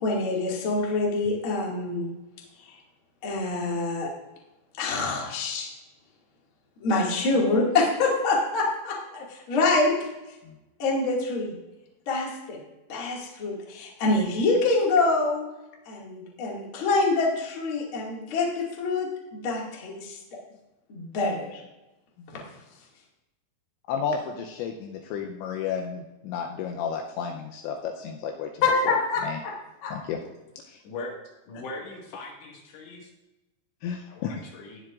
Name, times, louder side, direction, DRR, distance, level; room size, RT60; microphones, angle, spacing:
voice 1, 0.0-2.1 3.2-4.1 4.8-5.7 6.8-9.9 10.8-11.5 12.0-12.6 12.9-15.4 15.8-20.2 20.9-21.6 28.6-29.5 29.8-29.9, left 3 dB, 50° left, -3 dB, 1.6 m, -25 dB
voice 2, 23.9-28.5 28.9-29.4 29.9-30.2 30.7-30.8 33.8-34.3, left 7 dB, 85° left, 2 dB, 2.6 m, -32 dB
voice 3, 31.5-33.1 34.0-34.8, left 2 dB, 65° left, -1 dB, 3.8 m, -40 dB
20.0 x 7.7 x 2.5 m, 1.0 s
omnidirectional pair, 6.0 m